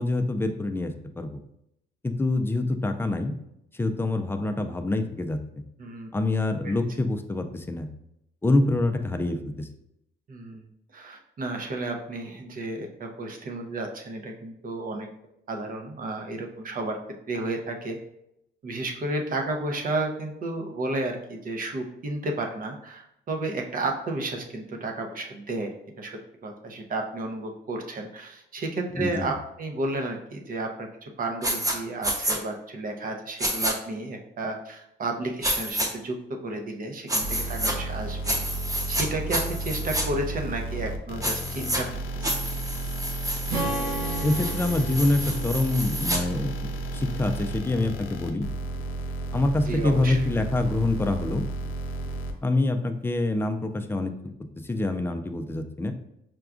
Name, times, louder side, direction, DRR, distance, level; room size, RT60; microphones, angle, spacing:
voice 1, 0.0-1.4 2.0-3.3 3.7-5.4 6.1-7.9 8.4-9.7 29.0-29.3 44.2-48.5 49.3-51.4 52.4-54.1 54.6-55.9, left 2 dB, 10° left, 6 dB, 0.4 m, -26 dB
voice 2, 5.8-6.1 6.6-6.7 10.3-15.1 15.5-17.0 17.3-18.0 18.6-36.2 36.4-38.4 38.9-41.9 42.1-42.3 49.6-50.2, right 2 dB, 45° right, 3 dB, 0.7 m, -32 dB
sound 1, 31.4-31.7 32.0-32.4 33.4-33.7 35.4-35.9 37.1-37.7 38.2-39.0 39.3-40.0 41.2-41.8 42.2-46.2, right 1 dB, 15° right, 0.9 m, -29 dB
sound 2, 37.2-52.3, right 2 dB, 85° left, 0.5 m, -33 dB
Strum, 43.5-47.8, right 2 dB, 80° right, 1.0 m, -35 dB
5.8 x 2.3 x 2.5 m, 0.81 s
cardioid pair, 90°, 20 cm